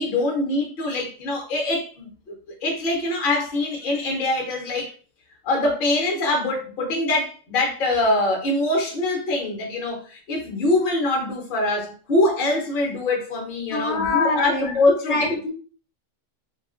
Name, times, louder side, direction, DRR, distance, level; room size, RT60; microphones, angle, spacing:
voice 1, 0.0-2.4 2.6-4.9 5.4-15.4, left 2 dB, 50° left, 0.8 m, -23 dB
voice 2, 13.7-14.8 15.1-15.5, left 2 dB, 70° left, 1.0 m, -25 dB
2.7 x 2.4 x 2.4 m
omnidirectional pair, 1.3 m